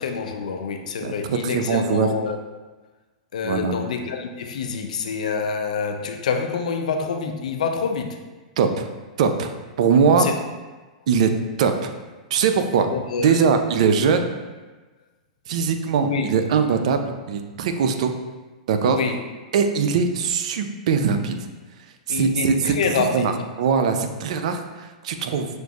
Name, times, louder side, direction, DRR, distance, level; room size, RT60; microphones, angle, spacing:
voice 1, 0.0-2.4 3.3-8.2 10.2-10.3 12.9-13.5 15.9-16.3 18.8-19.2 22.1-23.3, left 5 dB, 75° left, 5 dB, 0.5 m, -26 dB
voice 2, 1.0-2.1 3.4-3.8 8.6-8.9 9.2-9.5 9.8-10.3 11.1-11.9 12.3-12.9 13.2-14.4 15.5-18.1 18.7-19.0 19.5-21.5 22.1-25.5, right 6 dB, 65° right, 7 dB, 0.4 m, -21 dB
6.0 x 2.5 x 2.4 m, 1.2 s
hypercardioid pair, 120°, 4 cm